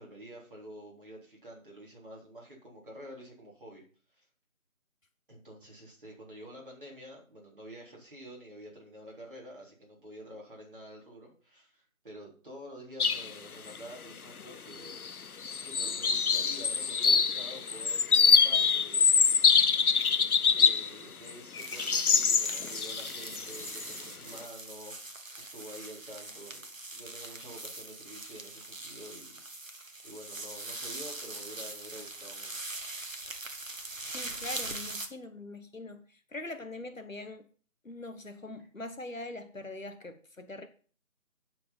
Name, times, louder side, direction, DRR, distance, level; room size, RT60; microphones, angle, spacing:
voice 1, 0.0-3.8 4.1-4.3 5.3-15.0 15.6-19.2 20.5-26.7 26.9-29.4 29.7-29.8 30.0-32.7, right 1 dB, 35° right, 3.8 m, -48 dB
sound 1, 13.0-13.3 13.7-13.8 14.7-15.1 15.4-20.9 21.3-24.0, left 6 dB, 85° left, 0.7 m, -25 dB
sound 2, 21.6-35.1, right 2 dB, 65° right, 1.5 m, -42 dB
voice 2, 34.0-37.5 37.8-40.7, left 2 dB, 65° left, 1.3 m, -43 dB
10.0 x 5.2 x 5.8 m
figure-of-eight pair, 170°, 42 cm